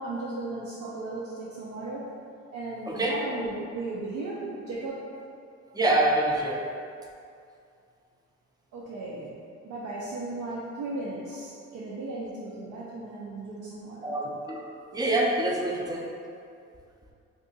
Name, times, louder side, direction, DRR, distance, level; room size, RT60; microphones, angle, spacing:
voice 1, 0.0-2.1 2.5-5.0 8.7-9.3 9.6-14.2, right 2 dB, 75° right, -6 dB, 0.6 m, -36 dB
voice 2, 2.9-3.2 5.7-6.8 14.0-16.2, right 1 dB, 15° right, -2 dB, 0.5 m, -26 dB
2.7 x 2.4 x 3.9 m, 2.4 s
cardioid pair, 90°, 30 cm